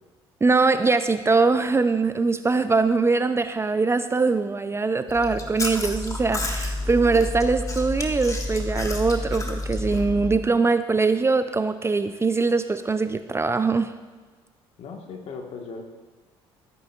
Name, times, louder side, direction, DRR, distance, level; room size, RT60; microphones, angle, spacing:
voice 1, 0.4-13.9, right 4 dB, 20° right, 11 dB, 0.4 m, -22 dB
Chewing mastication, 5.1-10.4, left 2 dB, 25° left, 1.5 m, -29 dB
voice 2, 14.8-15.8, left 4 dB, 55° left, 3 dB, 1.5 m, -37 dB
14.0 x 9.0 x 2.4 m, 1.3 s
hypercardioid pair, 60°, 13 cm